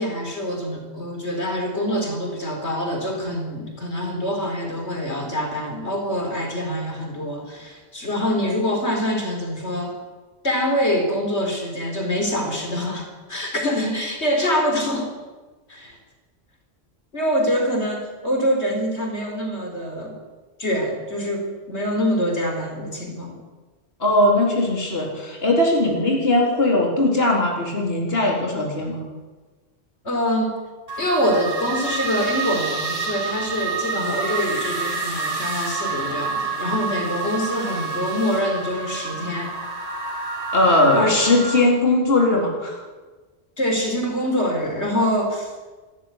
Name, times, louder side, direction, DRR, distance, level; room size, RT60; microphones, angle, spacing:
voice 1, 0.0-9.9 10.4-15.1 15.7-16.0 17.1-20.2 20.6-23.4 30.0-30.5 31.0-39.5 41.0-41.1 43.6-45.5, equal, 85° left, 3 dB, 4.7 m, -25 dB
voice 2, 24.0-29.0 40.5-42.8, left 1 dB, 60° left, -1 dB, 4.3 m, -19 dB
sound 1, 30.9-41.6, right 4 dB, 55° right, 6.6 m, -28 dB
27.0 x 14.5 x 9.9 m, 1.3 s
omnidirectional pair, 1.1 m